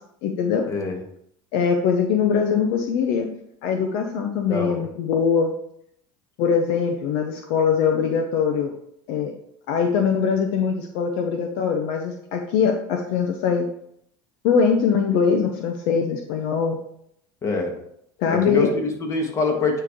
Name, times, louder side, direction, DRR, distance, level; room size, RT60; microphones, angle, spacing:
voice 1, 0.2-0.7 1.5-3.3 3.6-5.5 6.4-8.7 9.1-9.3 9.7-13.7 14.4-16.8 18.2-18.7, left 6 dB, 65° left, 4 dB, 0.7 m, -22 dB
voice 2, 4.5-4.8 17.4-17.7 18.5-19.8, left 3 dB, 30° left, 2 dB, 1.5 m, -24 dB
9.0 x 3.3 x 3.7 m, 0.71 s
supercardioid pair, 110°, 10 cm